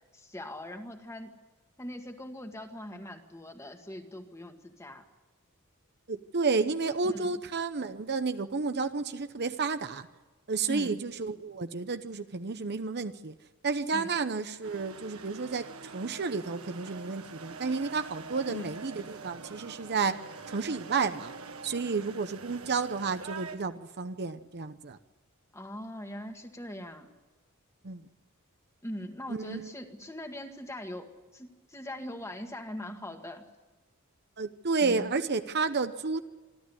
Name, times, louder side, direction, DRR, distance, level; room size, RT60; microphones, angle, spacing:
voice 1, 0.1-1.3 1.8-5.0 7.0-7.3 10.7-11.0 13.9-14.1 18.5-18.7 25.5-27.1 28.8-33.4 34.8-35.1, left 1 dB, 15° left, 5 dB, 1.9 m, -41 dB
voice 2, 6.1-10.1 10.5-13.3 13.6-15.7 15.9-20.2 20.5-21.3 21.6-25.0 27.8-28.0 29.3-29.7 34.4-36.2, right 4 dB, 50° right, 10 dB, 0.8 m, -31 dB
sound 1, 14.6-23.6, right 4 dB, 75° right, 1.6 m, -45 dB
27.0 x 12.0 x 9.9 m, 1.3 s
head